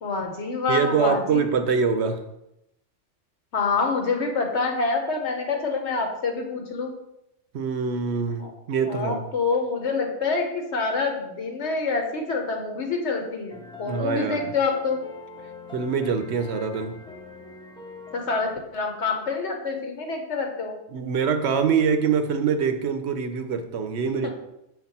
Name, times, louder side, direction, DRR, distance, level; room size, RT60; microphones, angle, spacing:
voice 1, 0.0-1.5 3.5-6.9 8.4-8.5 8.8-15.0 18.1-20.8 24.0-24.3, left 4 dB, 70° left, 2 dB, 1.3 m, -27 dB
voice 2, 0.7-2.2 7.5-9.3 13.9-14.4 15.7-17.0 20.9-24.3, right 6 dB, 70° right, 8 dB, 0.8 m, -24 dB
sound 1, 13.5-18.5, left 3 dB, 5° left, 0.6 m, -43 dB
6.4 x 4.2 x 4.1 m, 0.85 s
omnidirectional pair, 1.2 m